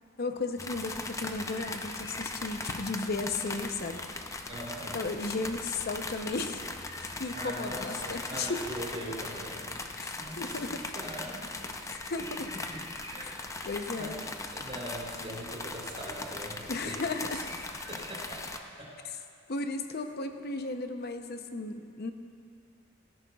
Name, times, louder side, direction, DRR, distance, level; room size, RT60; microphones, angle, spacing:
voice 1, 0.2-4.5 4.9-6.7 7.0-8.6 10.0-10.8 11.9-12.5 13.2-13.3 13.6-14.2 16.7-17.4 19.5-22.1, left 3 dB, 55° left, 6 dB, 0.7 m, -35 dB
sound 1, 0.6-18.6, left 2 dB, 15° left, 0.5 m, -39 dB
voice 2, 4.5-5.1 6.9-11.6 12.5-13.5 14.0-14.2 14.5-17.0 17.3-17.4 17.9-18.5 18.8-19.0, right 1 dB, 35° right, -5 dB, 3.5 m, -42 dB
17.0 x 14.0 x 2.4 m, 2.3 s
head